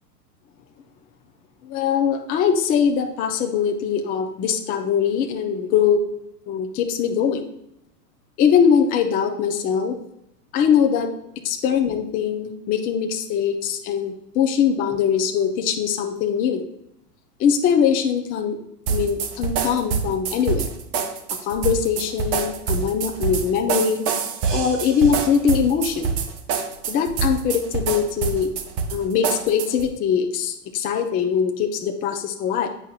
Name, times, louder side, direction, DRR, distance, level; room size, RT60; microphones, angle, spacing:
voice 1, 1.6-6.0 6.5-7.4 8.4-10.0 10.5-11.1 11.4-16.6 17.4-18.6 18.9-20.7 21.4-24.0 24.5-26.1 26.9-28.5 28.9-32.7, left 7 dB, 20° left, 4 dB, 0.4 m, -22 dB
sound 1, 18.9-29.9, right 6 dB, 30° right, 0.7 m, -26 dB
8.2 x 5.4 x 2.3 m, 0.80 s
hypercardioid pair, 110°, 48 cm